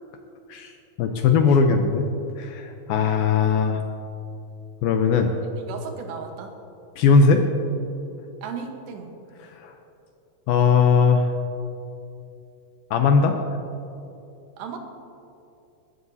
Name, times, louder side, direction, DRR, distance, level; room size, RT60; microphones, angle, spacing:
voice 1, 1.0-2.1 2.4-3.8 4.8-5.3 7.0-7.5 9.5-9.7 10.5-11.3 12.9-13.4, left 5 dB, 80° left, 5 dB, 2.3 m, -19 dB
voice 2, 5.7-6.5 8.4-9.1 14.6-14.8, right 6 dB, 80° right, 4 dB, 3.3 m, -35 dB
21.0 x 14.5 x 2.8 m, 2.7 s
omnidirectional pair, 4.9 m